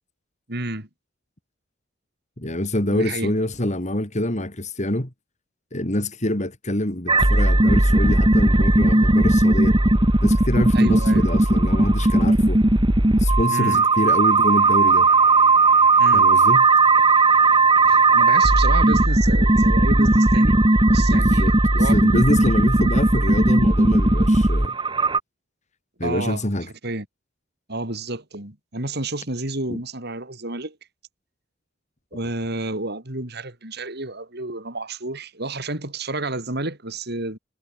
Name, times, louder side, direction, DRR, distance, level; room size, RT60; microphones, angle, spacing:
voice 1, 0.5-0.9 2.9-3.3 10.7-11.2 13.5-13.8 16.0-16.3 17.9-20.6 20.9-22.0 26.0-26.4 26.8-27.0 27.7-30.8 32.1-37.4, right 2 dB, 60° right, 4.8 m, -30 dB
voice 2, 2.4-5.1 5.7-9.8 10.2-12.6 13.2-15.1 16.1-16.7 21.0-24.8 26.0-26.7 29.7-29.8, left 1 dB, 40° left, 3.9 m, -26 dB
sound 1, 7.1-25.2, right 2 dB, 25° right, 1.5 m, -17 dB
head